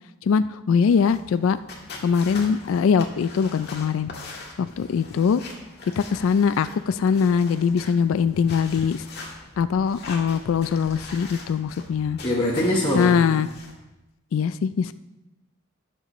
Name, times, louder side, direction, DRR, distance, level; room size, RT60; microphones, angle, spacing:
voice 1, 0.2-1.6 2.0-4.1 4.6-5.4 6.0-9.0 9.6-12.2 12.9-13.5 14.3-14.9, left 6 dB, 75° left, 13 dB, 0.3 m, -22 dB
sound 1, 0.9-13.7, left 3 dB, 50° left, 1.7 m, -41 dB
voice 2, 12.2-13.2, left 1 dB, 25° left, -4 dB, 1.2 m, -23 dB
17.0 x 6.7 x 3.0 m, 0.99 s
head